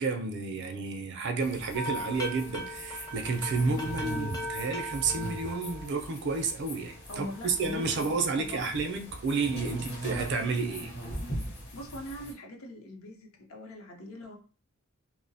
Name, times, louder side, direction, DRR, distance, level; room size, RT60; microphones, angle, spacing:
voice 1, 0.0-10.9, right 4 dB, 50° right, 5 dB, 0.4 m, -31 dB
sound 1, 1.4-12.3, right 1 dB, 45° left, 1.0 m, -40 dB
sound 2, 1.7-6.5 6.9-8.9 9.4-10.0, equal, 15° left, 0.4 m, -40 dB
voice 2, 7.1-8.7 10.1-10.9 11.7-14.4, equal, 70° left, 1 dB, 0.7 m, -42 dB
2.6 x 2.0 x 2.6 m, 0.40 s
head